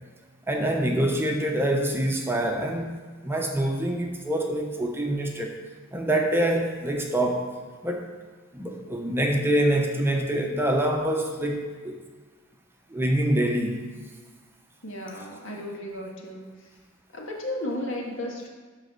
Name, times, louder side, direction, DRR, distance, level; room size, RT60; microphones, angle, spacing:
voice 1, 0.5-2.9 3.2-5.5 5.9-7.5 7.8-8.0 8.5-12.0 12.9-13.8, right 1 dB, 10° right, 2 dB, 0.8 m, -25 dB
voice 2, 14.8-16.5 17.1-18.5, left 1 dB, 65° left, -1 dB, 1.9 m, -34 dB
11.5 x 4.1 x 6.7 m, 1.5 s
head